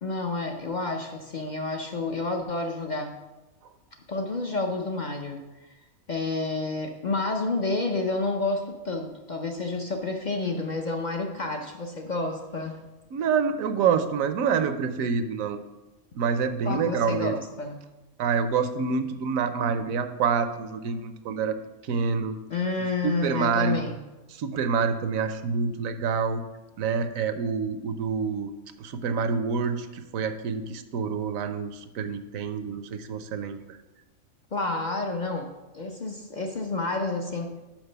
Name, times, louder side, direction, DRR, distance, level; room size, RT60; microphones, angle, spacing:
voice 1, 0.0-3.1 4.1-5.4 6.1-12.8 16.6-17.8 22.5-24.0 34.5-35.5 35.7-37.5, left 3 dB, 55° left, 3 dB, 0.5 m, -29 dB
voice 2, 13.1-15.6 16.1-17.4 18.2-21.6 21.8-22.4 23.0-23.8 24.3-26.4 26.8-28.5 28.8-33.8, right 6 dB, 75° right, 10 dB, 1.0 m, -27 dB
5.9 x 5.2 x 6.5 m, 1.1 s
omnidirectional pair, 1.5 m